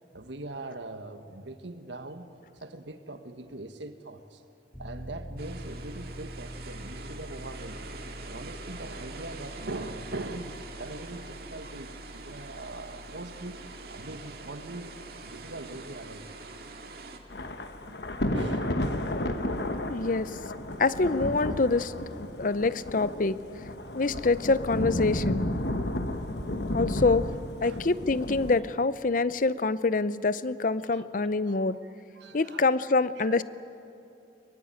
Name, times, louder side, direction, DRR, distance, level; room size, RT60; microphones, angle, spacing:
voice 1, 0.1-4.4 4.8-7.9 8.3-16.3 17.9-18.0 18.3-18.7 27.6-27.9 30.8-31.1 31.5-32.7 33.2-33.4, right 2 dB, 80° right, 8 dB, 1.6 m, -42 dB
Piano, 4.7-21.4, equal, 5° left, 3.7 m, -47 dB
sound 1, 5.4-17.2, right 3 dB, 55° right, 2.2 m, -45 dB
Thunder / Rain, 17.3-28.6, left 1 dB, 65° left, 1.3 m, -32 dB
voice 2, 19.0-19.4 19.8-20.4 20.8-21.9 22.4-23.4 23.9-25.5 26.7-27.3 27.6-31.8 32.3-33.4, left 3 dB, 45° left, 16 dB, 0.6 m, -26 dB
23.0 x 23.0 x 9.2 m, 2.7 s
head